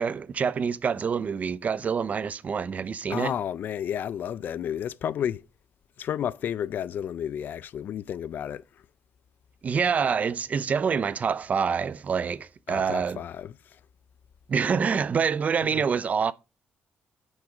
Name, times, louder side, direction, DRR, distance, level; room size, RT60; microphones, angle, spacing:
voice 1, 0.0-3.3 9.6-13.2 14.5-16.3, right 6 dB, 45° right, 0.6 m, -26 dB
voice 2, 3.1-5.4 6.0-8.6 12.7-13.8 15.7-15.8, left 9 dB, 65° left, 0.5 m, -32 dB
8.6 x 6.5 x 4.9 m
cardioid pair, 95°, 3 cm